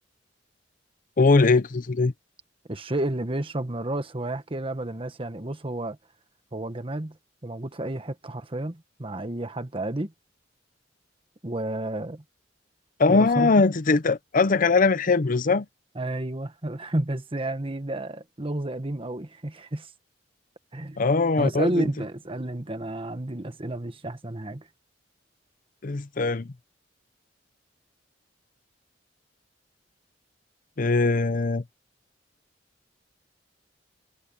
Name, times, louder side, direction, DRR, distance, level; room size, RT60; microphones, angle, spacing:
voice 1, 1.2-2.1 13.0-15.7 21.0-21.9 25.8-26.5 30.8-31.6, left 3 dB, 45° left, 0.7 m, -21 dB
voice 2, 2.7-6.0 6.5-7.2 7.4-10.1 11.4-12.2 13.1-13.5 15.9-19.9 20.7-21.0 21.4-24.6, right 1 dB, 30° right, 1.4 m, -31 dB
head